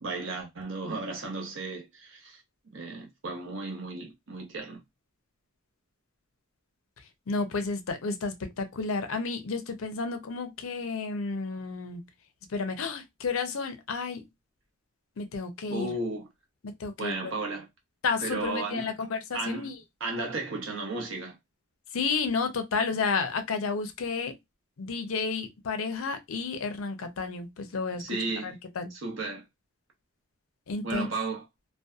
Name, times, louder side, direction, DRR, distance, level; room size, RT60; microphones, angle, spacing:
voice 1, 0.0-4.8 15.7-16.3 17.0-17.7 18.2-18.9 19.3-19.7 20.0-21.3 27.9-28.6 28.9-29.4 30.8-31.4, right 3 dB, 60° right, 0.8 m, -34 dB
voice 2, 7.3-12.0 12.5-14.3 15.2-15.9 16.6-17.2 18.0-19.7 21.9-24.3 24.8-28.2 28.4-28.9 30.7-31.1, left 4 dB, 75° left, 0.5 m, -31 dB
2.6 x 2.2 x 2.3 m
head